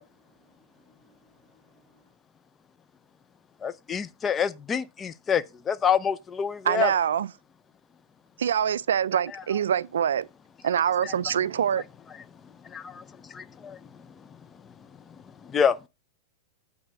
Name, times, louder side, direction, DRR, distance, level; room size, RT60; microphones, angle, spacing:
voice 1, 0.1-2.1, right 1 dB, 15° right, 4.1 m, -65 dB
voice 2, 3.6-6.9 11.0-11.1 12.6-13.8 15.4-15.8, left 7 dB, 25° left, 0.6 m, -27 dB
voice 3, 6.6-7.3 8.4-10.3 10.6-11.8, right 9 dB, 80° right, 0.4 m, -24 dB
8.7 x 3.5 x 6.3 m
hypercardioid pair, 105°, 0 cm